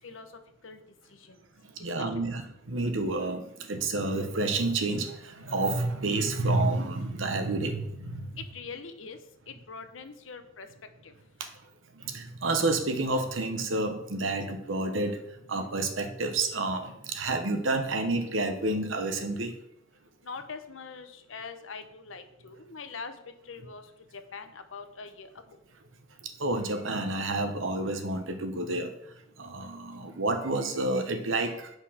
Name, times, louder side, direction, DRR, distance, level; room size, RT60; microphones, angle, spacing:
voice 1, 1.8-8.3 11.4-11.5 12.0-15.2 15.5-19.5 26.4-28.9 29.4-31.7, right 2 dB, 75° right, 7 dB, 1.1 m, -29 dB
voice 2, 8.4-9.2 9.5-10.7 11.0-11.1 20.2-23.2 23.5-23.8 24.3-25.3, left 5 dB, 75° left, 8 dB, 0.9 m, -42 dB
8.6 x 5.1 x 5.7 m, 0.79 s
head